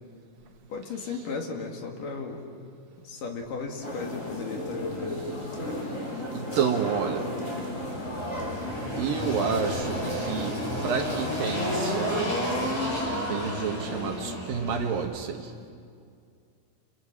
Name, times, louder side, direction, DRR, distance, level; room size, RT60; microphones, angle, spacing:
voice 1, 0.7-2.7 3.0-5.2 5.7-5.9 7.6-7.7, left 4 dB, 60° left, 2 dB, 3.5 m, -36 dB
Ambiance d'un salon marchand, 3.8-11.8, left 1 dB, 20° left, 4.8 m, -34 dB
voice 2, 6.3-7.3 9.0-10.5 10.8-12.3 13.3-15.5, right 7 dB, 65° right, 4 dB, 2.9 m, -29 dB
Engine, 7.6-15.0, left 1 dB, 40° left, 8.4 m, -32 dB
29.5 x 29.0 x 6.2 m, 2.3 s
omnidirectional pair, 4.7 m